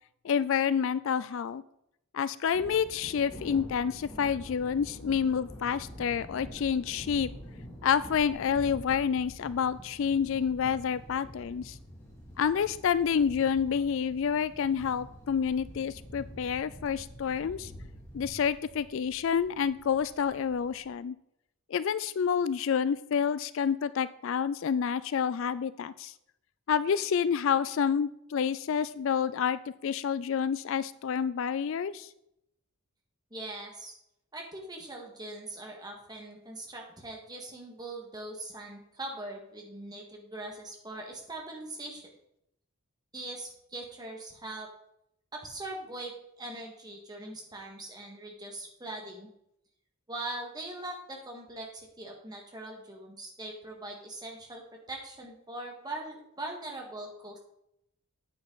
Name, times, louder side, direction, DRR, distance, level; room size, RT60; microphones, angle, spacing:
voice 1, 0.2-1.6 2.1-7.3 7.8-11.8 12.4-17.7 18.1-21.2 21.7-26.1 26.7-32.1, left 7 dB, 60° left, 16 dB, 0.3 m, -28 dB
Thunder, 2.4-20.9, equal, 15° left, 2.6 m, -47 dB
voice 2, 33.3-34.0 34.3-42.0 43.1-44.7 45.3-49.3 50.1-54.6 54.9-57.4, right 2 dB, 20° right, 0 dB, 1.9 m, -41 dB
9.4 x 8.6 x 4.0 m, 0.78 s
head